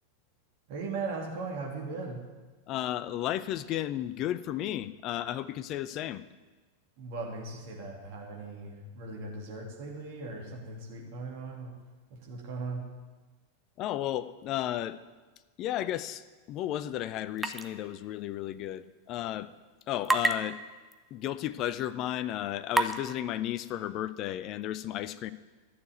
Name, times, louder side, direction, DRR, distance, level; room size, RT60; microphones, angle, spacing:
voice 1, 0.7-2.2 7.0-11.7 12.1-12.9, right 3 dB, 50° right, -1 dB, 2.6 m, -38 dB
voice 2, 2.7-6.2 13.8-15.0 15.6-19.5 19.9-20.6 21.1-25.3, left 12 dB, 35° left, 14 dB, 0.6 m, -33 dB
sound 1, 17.4-17.7 18.0-18.1 20.0-20.3 20.9-21.0 21.7-21.8 22.7-23.0, right 2 dB, 5° right, 0.8 m, -26 dB
12.0 x 7.0 x 9.4 m, 1.3 s
figure-of-eight pair, 90°, 0 cm